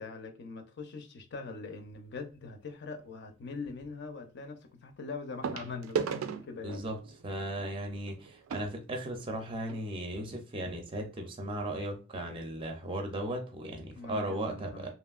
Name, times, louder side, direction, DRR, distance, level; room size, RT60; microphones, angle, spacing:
voice 1, 0.0-6.8 13.9-14.9, left 4 dB, 60° left, 0.5 m, -42 dB
sound 1, 1.8-2.1 3.8-3.9 5.4-9.8 10.6-10.7 10.9-11.1 11.6-11.7, right 6 dB, 85° right, 0.4 m, -38 dB
voice 2, 6.6-7.0 7.2-14.9, right 1 dB, 25° right, 0.4 m, -36 dB
2.8 x 2.5 x 2.3 m
head